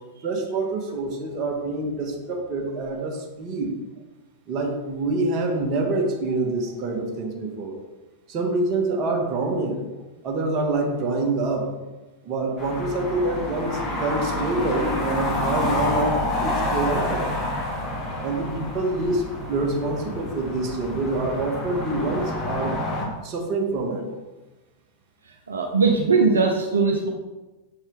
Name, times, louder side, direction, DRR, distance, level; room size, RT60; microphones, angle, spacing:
voice 1, 0.2-3.7 4.5-7.8 8.3-9.8 10.2-11.7 12.2-17.3 18.2-22.8 23.2-24.1, right 2 dB, 35° right, 1 dB, 1.4 m, -26 dB
sound 1, 12.6-23.0, left 1 dB, 25° left, 2.1 m, -28 dB
voice 2, 25.5-27.1, right 4 dB, 70° right, 1 dB, 0.6 m, -20 dB
7.4 x 4.4 x 3.5 m, 1.1 s
figure-of-eight pair, 90°, 0 cm